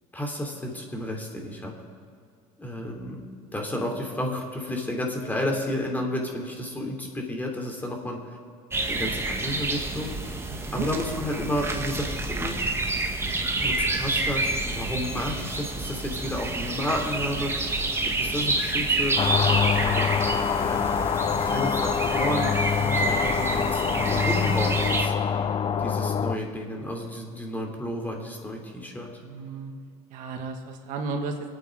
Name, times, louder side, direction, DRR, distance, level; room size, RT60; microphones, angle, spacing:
voice 1, 0.1-1.7 2.6-3.2 3.5-8.4 8.9-10.1 10.7-12.6 13.6-19.2 19.8-20.2 20.6-20.9 21.4-25.1 25.8-29.1, left 1 dB, 10° left, 1 dB, 3.3 m, -31 dB
sound 1, 8.7-25.1, right 2 dB, 20° right, 1.6 m, -28 dB
voice 2, 10.5-10.8 21.2-21.5 29.2-29.7 30.1-31.4, right 4 dB, 65° right, 3 dB, 2.2 m, -34 dB
sound 2, 19.2-26.4, left 7 dB, 40° left, 0.7 m, -25 dB
25.0 x 9.1 x 4.0 m, 2.3 s
supercardioid pair, 90°, 14 cm